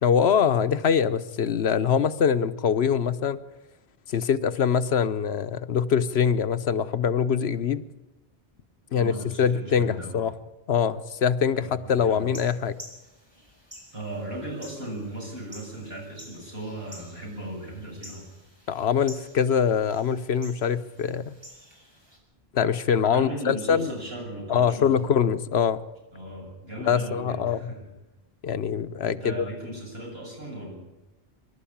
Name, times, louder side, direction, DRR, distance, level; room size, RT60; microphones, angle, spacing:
voice 1, 0.0-3.4 4.1-7.8 8.9-10.3 10.7-12.7 18.7-21.3 22.5-23.9 24.5-25.8 26.9-27.7 28.4-29.5, left 7 dB, 85° left, 11 dB, 1.1 m, -23 dB
voice 2, 8.9-10.2 11.5-12.3 13.9-18.3 23.1-24.9 26.1-27.8 29.0-30.7, right 1 dB, 75° right, -1 dB, 7.4 m, -37 dB
sound 1, 12.1-22.2, equal, 25° right, 5.6 m, -49 dB
24.5 x 12.5 x 8.7 m, 1.0 s
omnidirectional pair, 1.0 m